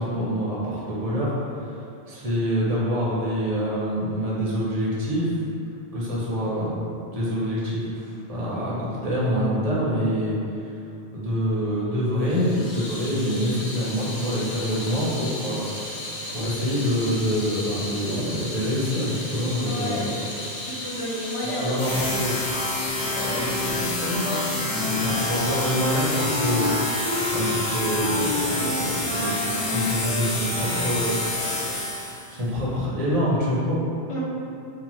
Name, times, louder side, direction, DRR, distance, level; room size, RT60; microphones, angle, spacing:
voice 1, 0.0-1.3 1.6-1.7 2.1-5.3 5.9-6.9 7.1-10.7 11.1-15.8 16.3-20.1 21.4-22.4 23.2-33.8, equal, 40° right, -7 dB, 0.6 m, -26 dB
Water tap faucet / Sink (filling or washing), 12.2-23.5, left 1 dB, 65° left, 0.8 m, -35 dB
voice 2, 19.5-20.1 20.6-22.0 23.0-23.3 34.1-34.2, left 1 dB, 45° left, -7 dB, 0.4 m, -32 dB
sound 1, 21.8-32.3, left 1 dB, 80° left, 1.2 m, -28 dB
Wind instrument woodwind instrument, 23.6-31.1, left 2 dB, 75° right, 0.8 m, -30 dB
2.7 x 2.1 x 2.9 m, 2.5 s
omnidirectional pair, 1.1 m